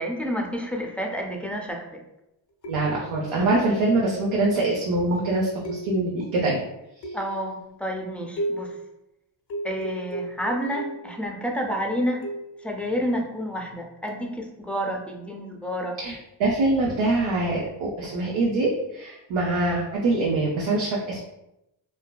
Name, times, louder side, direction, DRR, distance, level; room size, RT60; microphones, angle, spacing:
voice 1, 0.0-2.0 7.1-8.8 9.6-12.3 12.6-16.0, equal, 5° left, 1 dB, 0.4 m, -29 dB
sound 1, 2.6-3.2 4.4-4.8 5.6-6.3 7.0-7.5 8.4-8.8 9.5-11.1 12.2-12.6 14.1-14.3, right 1 dB, 55° left, 0.6 m, -34 dB
voice 2, 2.7-6.6 16.0-21.2, right 2 dB, 70° right, -3 dB, 0.6 m, -24 dB
2.6 x 2.1 x 2.2 m, 0.86 s
supercardioid pair, 40°, 48 cm